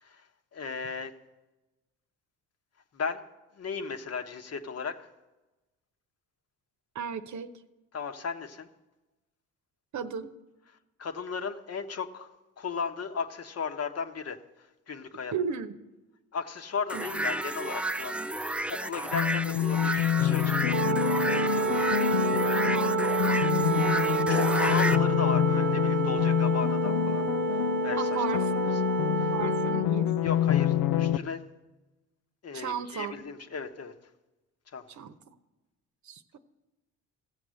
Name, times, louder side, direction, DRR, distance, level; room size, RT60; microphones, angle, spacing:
voice 1, 0.5-1.1 2.9-3.2 3.5-5.0 7.9-8.7 11.0-12.3 12.6-15.3 16.3-18.2 18.4-21.9 24.3-27.3 27.5-28.2 28.5-28.6 29.1-29.3 30.2-31.4 32.4-33.9 34.7-34.8, left 5 dB, 45° left, 7 dB, 1.2 m, -36 dB
voice 2, 6.9-7.5 9.9-10.3 15.3-15.8 16.9-17.3 22.7-23.8 28.0-28.7 29.3-30.1 32.5-33.1 34.9-35.3 36.0-36.4, right 7 dB, 55° right, 9 dB, 0.9 m, -36 dB
sound 1, 16.9-25.0, right 1 dB, 5° right, 0.3 m, -32 dB
sound 2, 19.1-31.2, left 11 dB, 85° left, 0.6 m, -27 dB
Wind instrument woodwind instrument, 20.7-29.9, right 7 dB, 30° right, 1.0 m, -29 dB
15.5 x 7.1 x 6.4 m, 1.1 s
supercardioid pair, 65°, 35 cm